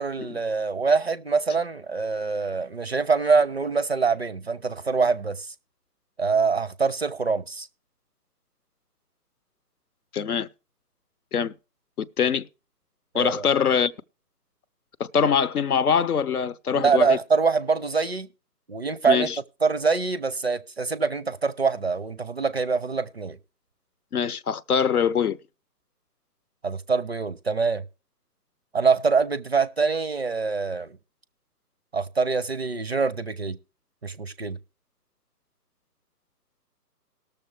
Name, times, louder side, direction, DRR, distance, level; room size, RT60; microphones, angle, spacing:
voice 1, 0.0-5.5 6.2-7.7 13.1-13.5 16.7-18.3 18.7-19.3 19.6-23.4 26.6-27.8 28.7-31.0 31.9-33.6 34.0-34.6, right 4 dB, 40° right, 0.5 m, -24 dB
voice 2, 10.1-10.5 11.3-11.5 12.0-12.5 13.1-13.9 15.0-17.2 19.1-19.4 24.1-25.4, left 7 dB, 65° left, 0.8 m, -23 dB
19.0 x 6.8 x 3.3 m
hypercardioid pair, 155°, 49 cm